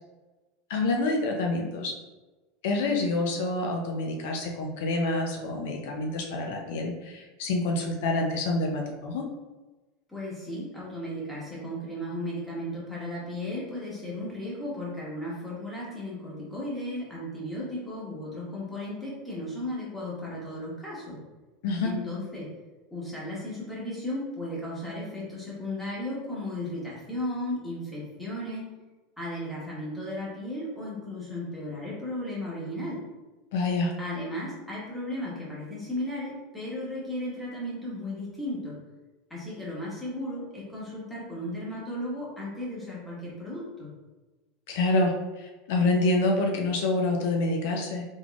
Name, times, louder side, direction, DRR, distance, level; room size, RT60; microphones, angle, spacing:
voice 1, 0.7-1.9 2.6-9.2 21.6-21.9 33.5-33.9 44.7-48.1, left 2 dB, 70° left, 1 dB, 0.5 m, -27 dB
voice 2, 10.1-21.2 21.8-22.5 22.9-28.7 29.2-33.0 34.0-38.8 39.3-43.9, left 1 dB, 5° left, -7 dB, 1.4 m, -35 dB
3.6 x 3.4 x 2.4 m, 1.2 s
supercardioid pair, 140°, 0 cm